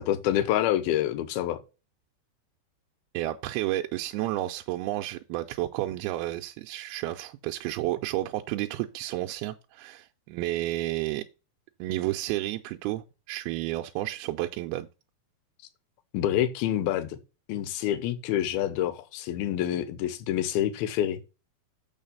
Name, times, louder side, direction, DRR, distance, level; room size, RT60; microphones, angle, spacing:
voice 1, 0.1-1.6 16.1-17.2 17.5-21.2, left 12 dB, 80° left, 2.6 m, -27 dB
voice 2, 3.1-11.3 11.8-14.9, right 16 dB, 80° right, 2.4 m, -31 dB
7.1 x 5.7 x 5.4 m
omnidirectional pair, 4.6 m